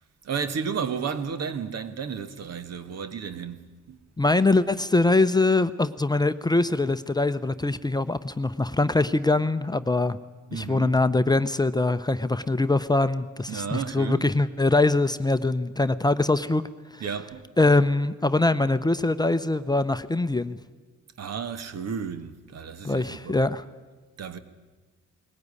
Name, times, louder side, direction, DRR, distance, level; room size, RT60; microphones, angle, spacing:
voice 1, 0.2-4.0 10.5-11.0 13.5-14.3 17.0-17.4 21.2-23.4 24.2-24.4, right 6 dB, 60° right, 1.5 m, -32 dB
voice 2, 4.2-10.2 10.5-16.6 16.9-17.0 17.6-20.6 22.8-23.6, left 2 dB, 15° left, 0.7 m, -23 dB
20.0 x 17.0 x 9.7 m
cardioid pair, 90°, 30 cm